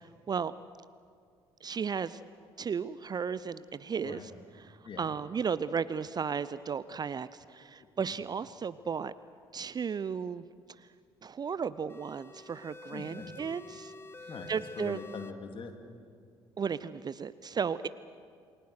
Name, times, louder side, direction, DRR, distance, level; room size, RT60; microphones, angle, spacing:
voice 1, 1.6-2.2 2.6-4.2 5.0-9.1 9.5-10.4 11.2-13.9 14.5-15.0 16.6-17.9, right 6 dB, 30° right, 16 dB, 0.6 m, -34 dB
sound 1, 11.9-15.3, left 3 dB, 15° left, 1.1 m, -48 dB
voice 2, 12.9-13.3 14.3-15.7, left 4 dB, 40° left, 5 dB, 2.9 m, -43 dB
28.5 x 20.0 x 6.5 m, 2.2 s
figure-of-eight pair, 50°, 13 cm